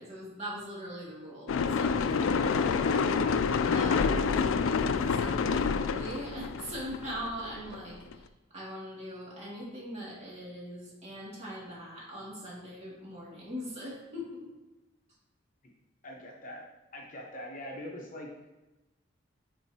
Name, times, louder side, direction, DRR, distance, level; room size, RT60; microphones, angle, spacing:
voice 1, 0.0-14.5, equal, 35° right, -6 dB, 2.3 m, -41 dB
sound 1, 1.5-8.1, left 5 dB, 75° left, 0.4 m, -28 dB
voice 2, 16.0-16.6 16.9-18.3, left 1 dB, 40° left, -1 dB, 1.0 m, -42 dB
9.0 x 4.5 x 2.8 m, 1.1 s
head